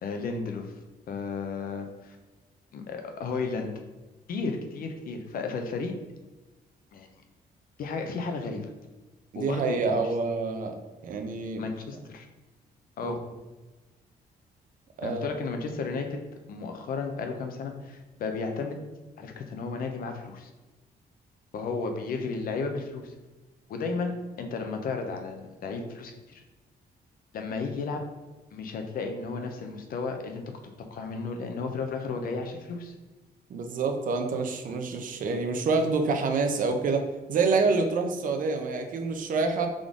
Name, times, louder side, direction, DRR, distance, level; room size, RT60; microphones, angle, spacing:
voice 1, 0.0-0.7 1.1-2.2 2.7-3.7 4.3-6.0 6.9-7.1 7.8-8.7 9.4-10.0 11.6-12.3 13.0-13.2 15.0-16.2 16.5-18.8 19.2-20.5 21.5-23.1 23.7-26.4 27.3-28.0 28.5-32.9, left 4 dB, 65° left, 5 dB, 0.7 m, -33 dB
voice 2, 9.3-10.8 11.0-11.6 13.0-13.2 15.0-15.3 33.5-39.7, right 4 dB, 55° right, 5 dB, 0.6 m, -27 dB
3.7 x 3.7 x 3.6 m, 1.2 s
wide cardioid pair, 165°, 16 cm